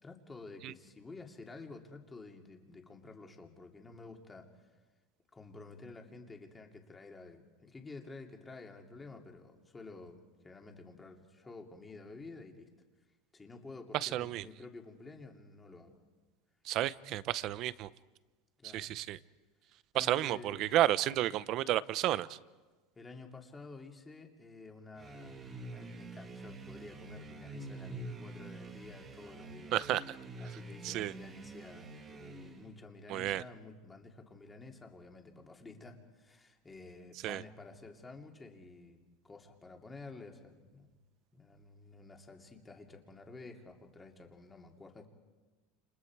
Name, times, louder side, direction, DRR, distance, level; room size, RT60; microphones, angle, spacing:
voice 1, 0.0-4.5 5.3-12.7 13.3-16.0 18.6-18.9 19.9-20.7 23.0-29.7 30.4-39.0 39.2-40.9 41.3-45.1, left 3 dB, 15° left, 2 dB, 2.6 m, -51 dB
voice 2, 13.9-14.5 16.6-17.9 18.7-19.2 19.9-22.4 29.7-30.2 30.8-31.1 33.1-33.4 37.2-37.4, right 14 dB, 45° right, 17 dB, 0.7 m, -31 dB
sound 1, 25.0-32.8, right 2 dB, 20° right, 1.9 m, -47 dB
30.0 x 29.0 x 4.7 m, 1.3 s
supercardioid pair, 150°, 0 cm